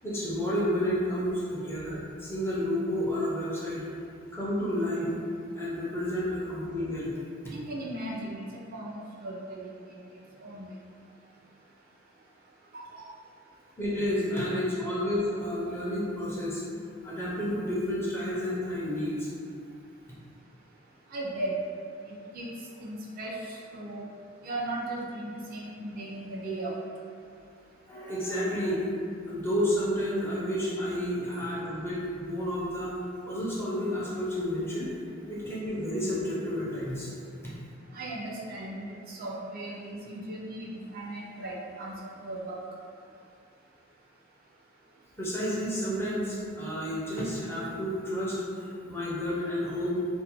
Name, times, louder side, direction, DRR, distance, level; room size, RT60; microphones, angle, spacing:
voice 1, 0.0-3.8 4.3-5.1 5.6-7.2 13.8-16.6 17.0-19.3 27.9-28.8 29.3-32.9 33.3-34.9 35.3-37.1 37.4-37.5 45.2-50.0, equal, 10° left, -7 dB, 0.5 m, -30 dB
voice 2, 7.5-8.4 8.7-9.7 10.4-10.7 12.7-12.8 21.1-21.5 22.3-22.5 22.8-24.0 24.4-26.7 37.9-41.9 42.2-42.5, right 1 dB, 45° right, -4 dB, 0.4 m, -37 dB
2.5 x 2.1 x 2.8 m, 2.4 s
head